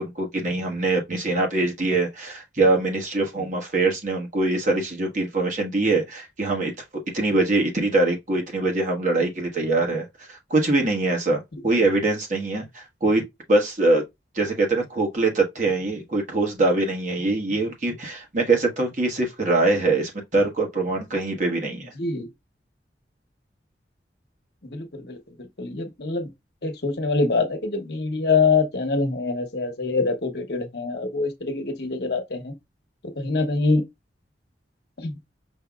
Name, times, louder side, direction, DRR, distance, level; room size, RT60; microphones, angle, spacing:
voice 1, 0.0-6.7 7.1-13.2 13.5-14.0 14.3-21.9, right 2 dB, 45° right, 1.2 m, -23 dB
voice 2, 22.0-22.3 24.6-26.3 26.6-32.5 33.2-33.8 35.0-35.1, left 4 dB, 60° left, 1.0 m, -25 dB
5.5 x 2.9 x 2.4 m
head